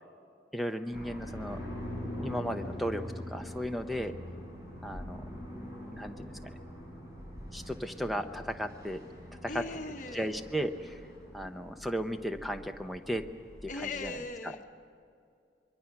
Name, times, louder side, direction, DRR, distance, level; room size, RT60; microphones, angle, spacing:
voice 1, 0.5-1.6 2.2-4.1 4.8-5.2 5.9-6.6 7.5-9.0 9.5-9.6 10.1-11.0 11.3-13.3 13.6-14.6, equal, ahead, 7 dB, 0.8 m, -35 dB
sound 1, 0.9-14.1, equal, 20° right, 5.1 m, -43 dB
voice 2, 9.5-10.3 13.7-14.7, left 3 dB, 45° left, 6 dB, 1.1 m, -39 dB
27.0 x 22.5 x 6.0 m, 2.4 s
head